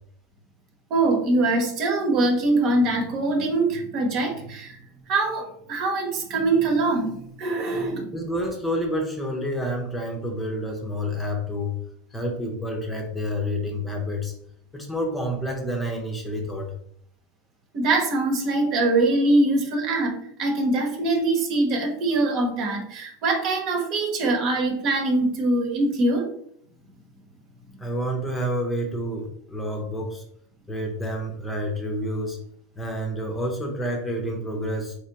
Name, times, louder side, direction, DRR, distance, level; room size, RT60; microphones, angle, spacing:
voice 1, 0.9-4.8 5.1-8.1 17.7-26.3, right 2 dB, 50° right, 3 dB, 1.0 m, -23 dB
voice 2, 8.1-11.8 12.1-14.3 14.7-16.7 27.8-30.2 30.7-32.4 32.8-35.0, equal, 15° left, 2 dB, 0.8 m, -29 dB
3.5 x 3.3 x 2.9 m, 0.68 s
supercardioid pair, 115°, 0 cm